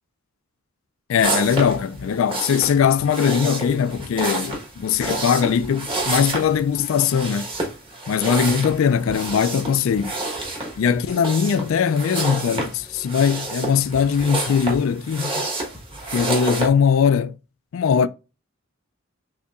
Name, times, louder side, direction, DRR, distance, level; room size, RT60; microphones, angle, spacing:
voice 1, 1.1-7.5 8.1-10.2 10.8-15.5 16.1-17.4 17.7-18.1, left 7 dB, 75° left, 0.3 m, -20 dB
sound 1, 1.2-16.7, right 2 dB, 25° right, 1.2 m, -29 dB
6.6 x 2.8 x 2.4 m
head